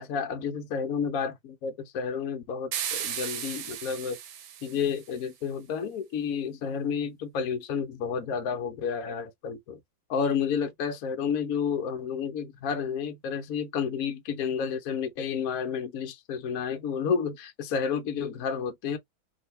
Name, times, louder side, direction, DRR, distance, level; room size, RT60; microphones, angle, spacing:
voice 1, 0.0-4.2 4.6-9.8 10.1-19.0, left 6 dB, 65° left, 0.9 m, -31 dB
sound 1, 2.7-5.1, right 9 dB, 85° right, 1.5 m, -35 dB
3.7 x 2.7 x 3.1 m
omnidirectional pair, 2.1 m